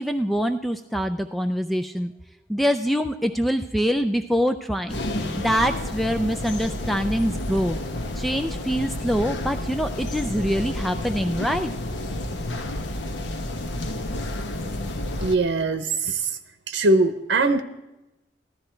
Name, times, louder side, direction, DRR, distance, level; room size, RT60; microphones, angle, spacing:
voice 1, 0.0-2.1 2.5-5.0 5.4-7.8 8.2-11.7, equal, ahead, 7 dB, 0.4 m, -24 dB
sound 1, 4.9-15.3, left 1 dB, 75° left, 1.1 m, -30 dB
voice 2, 15.2-16.2 16.7-17.6, right 2 dB, 90° right, 10 dB, 0.8 m, -21 dB
14.5 x 12.5 x 4.4 m, 1.0 s
head